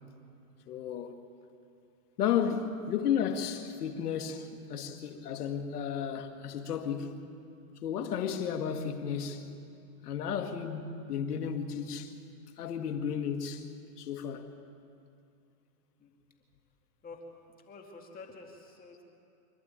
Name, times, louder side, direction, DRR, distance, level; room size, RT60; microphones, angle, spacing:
voice 1, 0.7-1.2 2.2-7.3 7.8-9.6 10.0-12.1 12.6-13.7 14.0-14.5, left 8 dB, 80° left, 2.0 m, -33 dB
voice 2, 17.7-19.0, left 4 dB, 20° left, 2.3 m, -48 dB
26.0 x 11.5 x 8.8 m
supercardioid pair, 140°, 45 cm